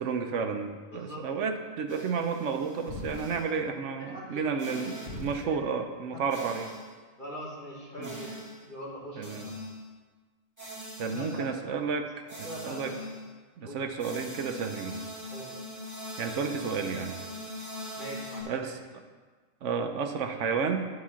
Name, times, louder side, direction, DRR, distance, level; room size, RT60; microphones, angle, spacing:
voice 1, 0.0-6.7 8.0-8.1 9.2-9.5 11.0-12.1 12.4-12.9 13.6-15.0 16.2-17.2 18.4-18.8 19.6-20.9, right 5 dB, 65° right, 6 dB, 1.0 m, -31 dB
voice 2, 0.9-1.3 4.0-4.4 6.1-6.2 7.2-8.3 8.6-9.6 11.0-11.5 12.4-12.9 13.6-13.8 15.2-15.5 18.0-18.7, equal, 40° left, -4 dB, 1.6 m, -42 dB
sound 1, 1.9-3.5 4.6-5.4 6.3-6.9 8.0-8.6 9.2-9.9 10.6-11.6 12.3-13.3 14.0-18.4, left 1 dB, 15° right, 1.9 m, -41 dB
10.5 x 4.3 x 5.9 m, 1.4 s
omnidirectional pair, 1.4 m